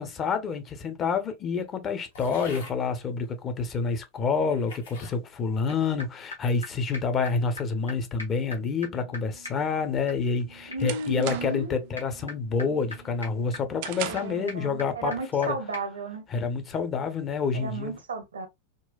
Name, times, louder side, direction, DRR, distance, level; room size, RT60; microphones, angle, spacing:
voice 1, 0.0-15.6 16.3-18.0, left 5 dB, 25° left, 0.6 m, -28 dB
sound 1, 2.1-2.8 3.6-3.7 4.4-5.2 5.7-6.1, left 4 dB, 60° left, 0.8 m, -46 dB
sound 2, 5.7-5.8 6.0-6.1 6.3-6.4 6.6-6.7 6.9-7.0 7.3-7.4 7.6-7.7 7.9-8.0 8.2-15.5 15.7-15.8, left 2 dB, 80° left, 1.1 m, -43 dB
sound 3, 10.0-11.8 12.2-12.5 12.9-14.5, right 13 dB, 50° right, 0.3 m, -38 dB
voice 2, 10.7-11.8 14.0-16.2 17.5-18.5, right 2 dB, 70° right, 0.7 m, -34 dB
3.8 x 2.2 x 2.2 m
figure-of-eight pair, 90°, 0 cm